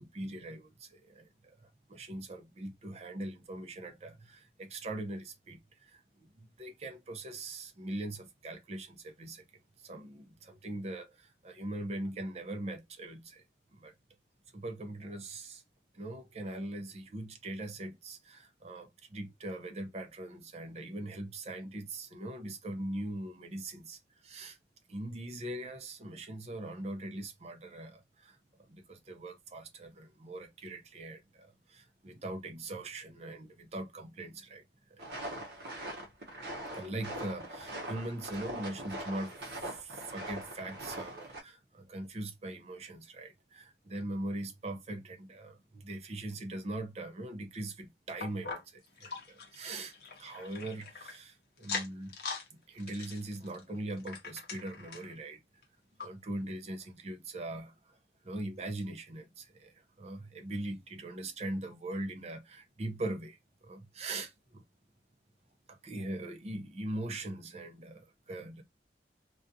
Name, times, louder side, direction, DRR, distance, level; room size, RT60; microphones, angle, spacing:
voice 1, 0.0-6.0 6.4-9.4 9.8-13.4 13.7-13.9 14.5-15.6 15.9-24.6 24.9-28.4 28.7-34.6 34.9-35.4 36.5-39.3 39.6-52.2 52.7-55.4 56.0-58.0 58.2-63.4 63.6-64.6 65.7-68.6, right 1 dB, 35° right, 0.5 m, -41 dB
sound 1, 35.0-41.4, right 1 dB, 65° right, 0.9 m, -42 dB
sound 2, 48.2-51.2 51.6-52.5 52.8-55.1 55.6-55.7 56.0-56.1 56.7-56.8, left 4 dB, 60° left, 0.7 m, -42 dB
2.4 x 2.3 x 2.6 m
head